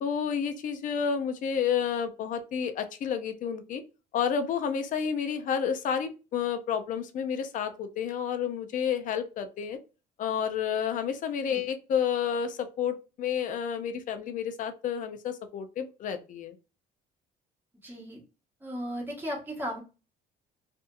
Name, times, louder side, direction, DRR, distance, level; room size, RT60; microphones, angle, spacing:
voice 1, 0.0-3.8 4.1-9.8 10.2-16.5, left 7 dB, 50° left, 8 dB, 0.5 m, -30 dB
voice 2, 17.8-18.2 18.6-19.8, equal, 10° right, -3 dB, 1.2 m, -35 dB
2.6 x 2.5 x 2.3 m, 0.32 s
cardioid pair, 110°, 17 cm